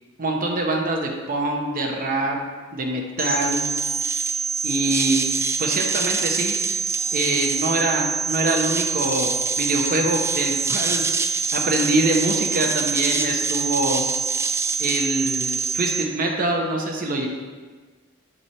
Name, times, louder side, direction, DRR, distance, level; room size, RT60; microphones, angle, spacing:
voice 1, 0.2-2.4 2.7-3.6 4.6-5.3 5.6-6.5 7.1-11.0 11.5-14.0 14.8-17.3, right 2 dB, 40° right, 1 dB, 0.9 m, -24 dB
sound 1, 3.2-16.0, right 5 dB, 10° right, 0.3 m, -25 dB
7.0 x 3.4 x 5.6 m, 1.4 s
head